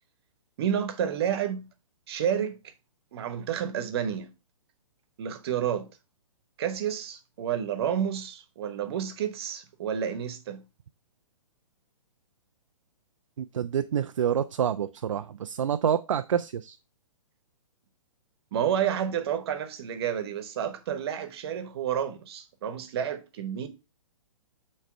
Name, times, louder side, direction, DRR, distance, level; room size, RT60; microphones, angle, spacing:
voice 1, 0.6-1.7 2.1-2.7 3.1-4.3 5.2-5.9 6.6-10.6 18.5-23.7, right 9 dB, 45° right, 1.1 m, -30 dB
voice 2, 13.4-16.8, right 8 dB, 65° right, 0.4 m, -27 dB
8.3 x 3.2 x 4.4 m
figure-of-eight pair, 120°, 17 cm